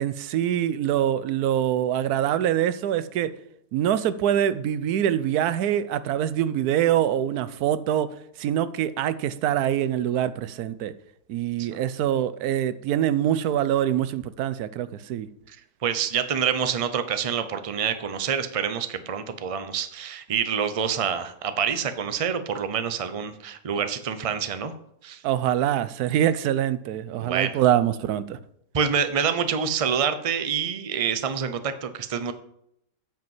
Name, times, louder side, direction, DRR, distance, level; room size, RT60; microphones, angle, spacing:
voice 1, 0.0-3.3 3.7-11.0 11.3-15.3 25.2-28.4, right 11 dB, 75° right, 1.1 m, -24 dB
voice 2, 15.8-24.7 25.0-25.2 27.2-27.6 28.7-32.3, right 7 dB, 35° right, 0.5 m, -27 dB
9.2 x 5.3 x 7.2 m
omnidirectional pair, 1.7 m